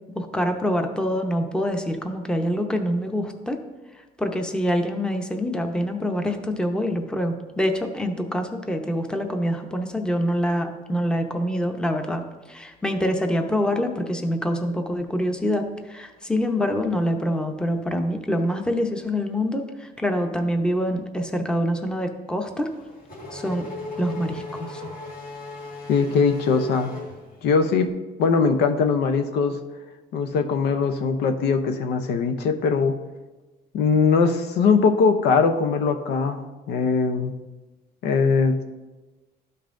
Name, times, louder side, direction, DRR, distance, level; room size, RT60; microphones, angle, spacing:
voice 1, 0.1-3.6 4.2-12.2 12.5-22.7 23.3-23.7 24.0-24.8, equal, 5° left, 5 dB, 0.7 m, -25 dB
Race car auto racing / Accelerating revving vroom, 22.5-27.8, left 2 dB, 60° left, 1.8 m, -37 dB
voice 2, 25.9-26.9 27.4-27.9 28.2-29.6 30.1-33.0 33.7-37.3 38.0-38.6, left 5 dB, 80° left, 7 dB, 0.7 m, -21 dB
12.5 x 5.4 x 2.6 m, 1.2 s
cardioid pair, 110°, 17 cm